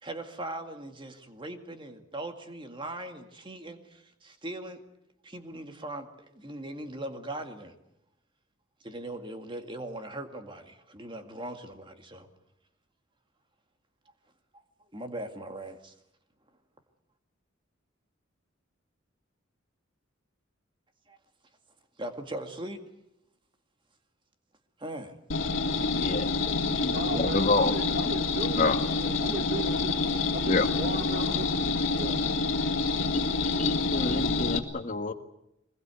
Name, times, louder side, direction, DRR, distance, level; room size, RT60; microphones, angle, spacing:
voice 1, 0.0-4.8 5.2-7.7 8.8-12.3 14.5-14.6 14.9-15.9 21.1-21.2 22.0-22.8 24.8-25.2, right 1 dB, 25° right, 6 dB, 2.1 m, -40 dB
sound 1, 25.3-34.6, left 3 dB, 75° left, 2.1 m, -27 dB
voice 2, 26.0-27.7 28.5-28.8 30.4-30.7 33.1-35.1, left 2 dB, 40° left, 7 dB, 1.5 m, -28 dB
voice 3, 26.9-32.3, right 2 dB, 45° right, 4 dB, 1.6 m, -37 dB
23.5 x 21.0 x 8.3 m, 0.84 s
head